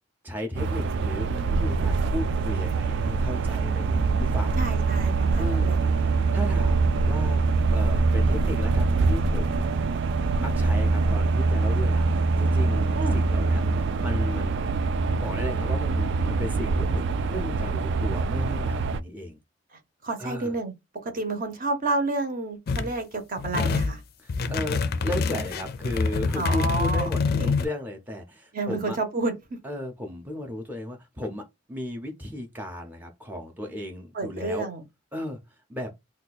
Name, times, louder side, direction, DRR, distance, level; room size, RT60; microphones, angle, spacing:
voice 1, 0.2-4.6 5.3-7.4 7.7-10.0 10.4-14.8 15.2-19.4 20.2-20.5 24.2-29.0 29.6-34.7 35.1-35.4 35.7-35.9, left 1 dB, 10° right, 0.5 m, -35 dB
sound 1, 0.6-19.0, right 3 dB, 65° right, 0.3 m, -24 dB
voice 2, 4.6-5.9 12.9-13.2 20.0-20.7 21.0-24.0 26.3-27.5 28.5-29.4 34.1-34.8, right 2 dB, 50° right, 0.8 m, -30 dB
sound 2, 22.7-22.9 23.4-24.0 24.3-27.7, left 4 dB, 55° left, 0.4 m, -26 dB
2.7 x 2.2 x 4.0 m
head